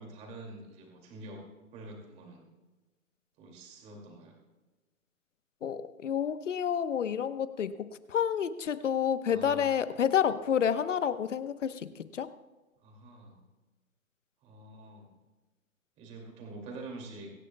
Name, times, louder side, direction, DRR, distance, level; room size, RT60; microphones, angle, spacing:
voice 1, 0.0-1.4 1.7-2.5 3.4-4.4 9.3-9.7 12.8-13.4 14.4-15.2 16.0-17.3, right 2 dB, 15° right, 1 dB, 2.4 m, -46 dB
voice 2, 5.6-12.3, left 8 dB, 60° left, 12 dB, 1.0 m, -29 dB
24.0 x 11.0 x 2.3 m, 1.2 s
hypercardioid pair, 155°, 42 cm